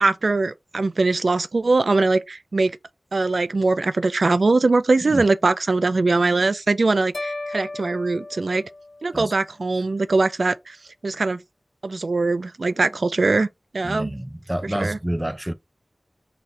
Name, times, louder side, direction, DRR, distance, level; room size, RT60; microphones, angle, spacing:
voice 1, 0.0-2.8 3.1-8.6 9.0-10.8 11.0-11.4 11.8-13.5 13.7-14.1 14.6-15.0, right 3 dB, 70° right, 0.4 m, -21 dB
sound 1, 7.1-9.4, left 2 dB, 60° left, 0.4 m, -35 dB
voice 2, 13.8-15.5, right 1 dB, 15° right, 0.5 m, -28 dB
4.0 x 2.6 x 3.1 m
wide cardioid pair, 50°, 0 cm